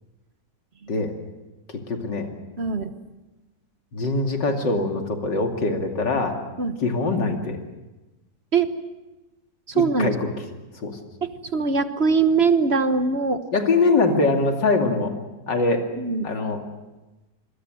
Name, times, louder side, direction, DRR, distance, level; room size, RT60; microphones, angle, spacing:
voice 1, 1.7-2.3 3.9-6.4 6.8-7.6 9.7-10.3 10.8-11.0 13.5-15.1 15.5-15.9 16.2-16.6, left 3 dB, 80° left, 4 dB, 3.3 m, -23 dB
voice 2, 2.6-2.9 6.6-6.8 8.5-8.7 9.7-10.1 11.2-13.4 16.0-16.3, right 5 dB, 40° right, 9 dB, 1.4 m, -22 dB
26.5 x 22.0 x 7.9 m, 1.1 s
omnidirectional pair, 1.9 m